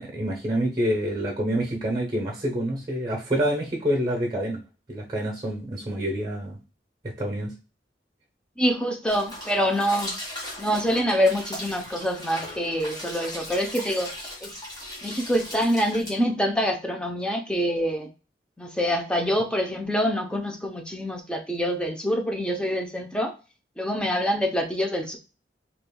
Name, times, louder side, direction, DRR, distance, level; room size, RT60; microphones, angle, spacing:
voice 1, 0.0-4.6 4.9-6.6 7.0-7.5, equal, 25° right, 1 dB, 0.9 m, -27 dB
voice 2, 8.6-10.1 10.6-14.1 14.4-14.5 15.0-18.1 18.6-23.3 23.8-25.2, equal, 5° left, 3 dB, 0.7 m, -25 dB
sound 1, 9.1-16.2, left 1 dB, 20° left, 1.7 m, -38 dB
5.1 x 3.0 x 2.3 m, 0.32 s
head